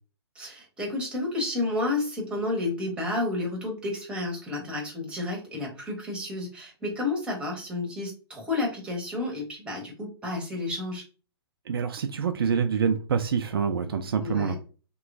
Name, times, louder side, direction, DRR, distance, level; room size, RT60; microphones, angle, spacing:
voice 1, 0.3-11.0 14.2-14.5, left 2 dB, 5° right, 1.0 m, -31 dB
voice 2, 11.7-14.5, right 6 dB, 60° right, 0.4 m, -26 dB
3.0 x 3.0 x 2.5 m
figure-of-eight pair, 125°, 14 cm